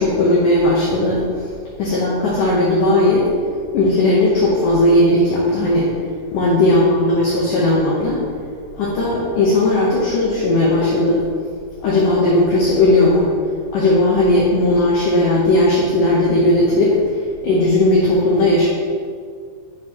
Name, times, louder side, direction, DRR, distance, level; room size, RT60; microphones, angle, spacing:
voice 1, 0.0-1.5 1.8-3.3 3.7-5.9 6.3-8.2 8.8-11.2 11.8-13.3 13.7-18.7, left 1 dB, 90° left, -5 dB, 1.8 m, -16 dB
9.7 x 7.1 x 3.0 m, 2.1 s
omnidirectional pair, 5.3 m